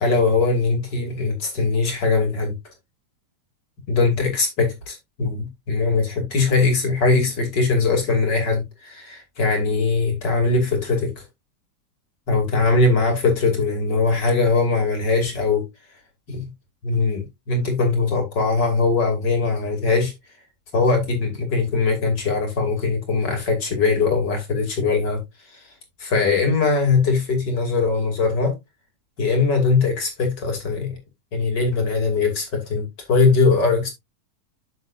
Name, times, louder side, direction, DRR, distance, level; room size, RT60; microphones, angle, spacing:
voice 1, 0.0-2.6 3.9-11.1 12.3-15.7 16.3-16.5 16.8-20.1 20.7-25.2 25.5-25.6 26.0-28.6 29.2-31.0 31.3-33.9, left 4 dB, 35° left, 3.0 m, -21 dB
8.9 x 6.8 x 2.5 m
omnidirectional pair, 3.3 m